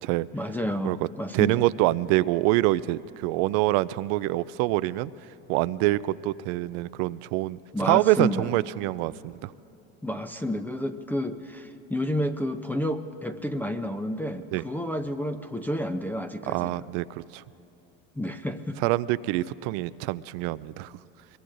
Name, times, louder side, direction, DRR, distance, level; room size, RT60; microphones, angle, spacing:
voice 1, 0.3-1.7 7.7-8.5 10.0-16.9 18.2-18.8, equal, 5° left, 4 dB, 0.6 m, -30 dB
voice 2, 1.3-5.1 5.5-9.5 14.5-14.6 16.5-17.4 18.8-20.9, right 17 dB, 65° right, 18 dB, 0.5 m, -25 dB
24.0 x 22.0 x 2.6 m, 2.9 s
supercardioid pair, 90°, 33 cm